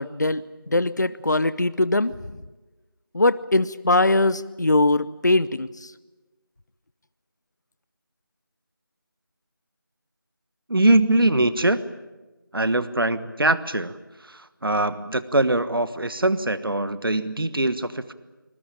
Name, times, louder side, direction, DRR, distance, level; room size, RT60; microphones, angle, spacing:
voice 1, 0.0-2.1 3.1-5.9, left 2 dB, 55° left, 16 dB, 0.7 m, -21 dB
voice 2, 10.7-11.8 12.5-18.1, right 1 dB, 80° right, 14 dB, 1.4 m, -22 dB
22.0 x 21.5 x 8.7 m, 1.2 s
figure-of-eight pair, 175°, 12 cm